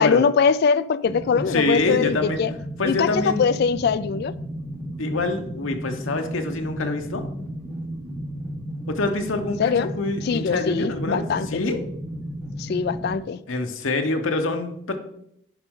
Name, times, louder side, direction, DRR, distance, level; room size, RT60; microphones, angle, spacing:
voice 1, 0.0-2.5 2.8-4.3 9.6-9.9 10.2-11.6 12.6-13.4, left 6 dB, 55° left, 0.3 m, -22 dB
sound 1, 1.0-13.2, equal, 5° right, 1.0 m, -34 dB
voice 2, 1.3-2.4 2.8-3.4 5.0-7.2 8.9-11.8 13.5-15.0, left 2 dB, 90° left, 1.0 m, -26 dB
9.5 x 5.2 x 3.7 m
head